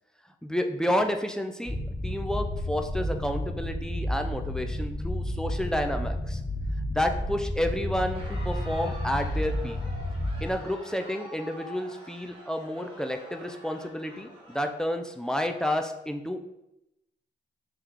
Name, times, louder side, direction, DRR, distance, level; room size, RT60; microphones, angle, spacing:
voice 1, 0.4-1.8 2.0-6.4 6.9-9.8 10.4-16.5, left 1 dB, 5° left, 5 dB, 0.4 m, -30 dB
sound 1, 1.6-10.5, left 1 dB, 20° left, 1.4 m, -31 dB
Crowd, 8.0-15.5, equal, 25° right, 1.5 m, -47 dB
3.2 x 3.1 x 3.6 m, 0.88 s
cardioid pair, 45°, 20 cm